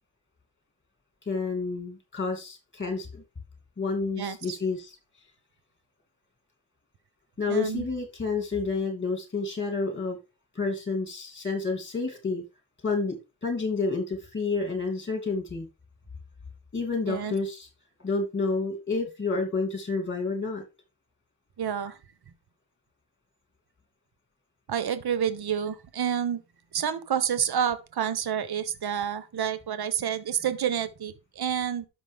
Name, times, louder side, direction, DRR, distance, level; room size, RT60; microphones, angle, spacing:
voice 1, 1.3-3.2 3.8-5.0 7.4-10.2 10.5-12.4 12.8-15.7 16.7-17.7 18.0-20.6, left 4 dB, 25° left, 2.8 m, -29 dB
voice 2, 4.2-4.6 7.5-7.9 17.1-17.3 21.6-22.0 24.7-26.4 26.7-31.9, right 8 dB, 55° right, 1.1 m, -29 dB
11.5 x 6.1 x 3.5 m
cardioid pair, 85°, 47 cm